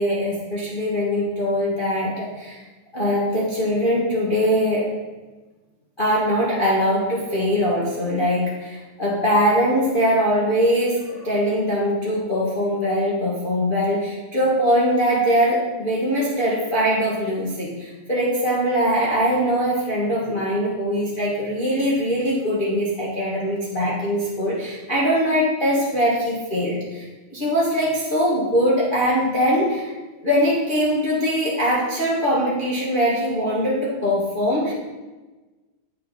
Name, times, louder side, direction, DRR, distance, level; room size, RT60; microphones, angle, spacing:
voice 1, 0.0-2.6 2.9-4.9 6.0-29.9 30.2-34.7, equal, 90° left, -6 dB, 0.4 m, -22 dB
8.5 x 6.3 x 4.0 m, 1.2 s
omnidirectional pair, 3.5 m